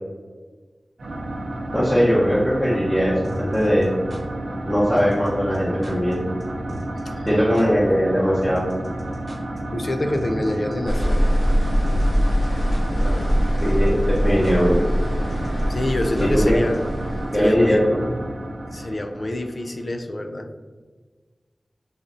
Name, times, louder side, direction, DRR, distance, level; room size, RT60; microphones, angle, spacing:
sound 1, 1.0-19.9, right 1 dB, 90° right, 0.6 m, -31 dB
voice 1, 1.7-3.9 4.7-6.2 7.3-8.6 13.6-14.9 16.2-16.6 17.3-18.0, equal, 5° left, -8 dB, 0.7 m, -20 dB
sound 2, 3.2-4.2 5.0-5.3 5.5-5.6 5.8-6.1 6.4-6.5 6.7-7.0 7.3-7.4 7.5-7.6 8.4-9.6 9.8-9.9 10.1-10.7 11.0-11.1 11.9-12.2 12.4-13.0 13.3-13.4 13.6-13.9 14.1-14.2 14.4-14.5 15.3-16.5 16.7-16.8, right 1 dB, 40° right, 1.1 m, -37 dB
voice 2, 9.7-11.2 12.8-13.3 15.7-16.8 17.3-17.8 18.7-20.5, left 1 dB, 50° left, 5 dB, 0.3 m, -26 dB
sound 3, 10.8-17.6, equal, 75° left, 0.8 m, -22 dB
3.2 x 2.6 x 3.7 m, 1.4 s
wide cardioid pair, 70°, 0 cm